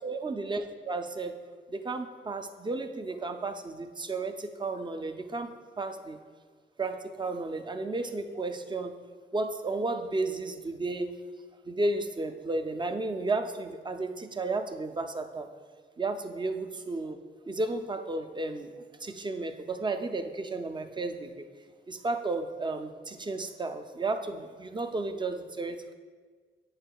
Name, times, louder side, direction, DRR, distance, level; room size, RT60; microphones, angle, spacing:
voice 1, 0.0-1.3 1.7-6.2 6.8-9.0 9.3-11.1 11.7-15.5 16.0-17.2 17.5-18.7 19.0-21.5 21.9-25.9, right 2 dB, 25° right, 7 dB, 0.4 m, -33 dB
8.6 x 6.4 x 2.3 m, 1.5 s
wide cardioid pair, 110°, 20 cm